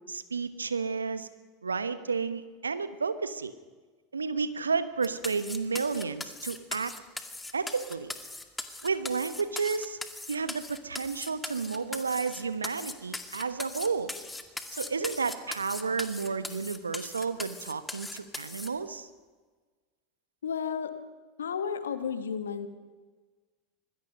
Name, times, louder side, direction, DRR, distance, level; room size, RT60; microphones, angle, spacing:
voice 1, 0.1-1.3 1.6-3.5 4.1-6.9 7.5-8.1 8.8-10.0 10.3-14.1 14.8-19.1, right 5 dB, 85° right, 13 dB, 1.1 m, -31 dB
sound 1, 5.0-18.7, left 2 dB, 10° left, 2.1 m, -39 dB
voice 2, 20.4-20.9 21.4-22.7, left 7 dB, 80° left, 11 dB, 1.5 m, -32 dB
26.0 x 20.5 x 5.4 m, 1.4 s
figure-of-eight pair, 80°, 0 cm